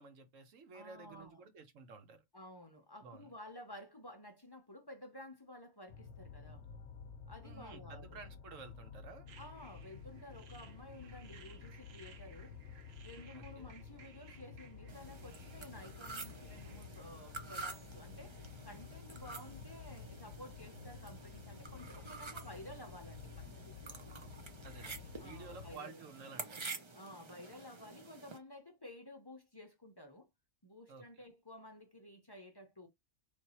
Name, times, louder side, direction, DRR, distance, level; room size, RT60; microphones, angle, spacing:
voice 1, 0.0-2.2 3.0-3.3 7.4-9.3 13.3-13.7 19.3-19.6 24.6-26.7 30.9-31.1, right 4 dB, 75° right, 1.3 m, -53 dB
voice 2, 0.7-1.4 2.3-6.7 7.3-8.2 9.4-12.6 13.0-23.9 25.2-26.0 26.9-30.3 30.6-32.9, left 1 dB, 25° left, 0.6 m, -53 dB
sound 1, 5.9-25.8, left 6 dB, 65° left, 0.8 m, -52 dB
sound 2, 9.3-17.2, right 6 dB, 60° right, 0.9 m, -61 dB
sound 3, 14.9-28.4, right 3 dB, 35° right, 0.4 m, -49 dB
3.3 x 2.7 x 4.2 m
omnidirectional pair, 1.3 m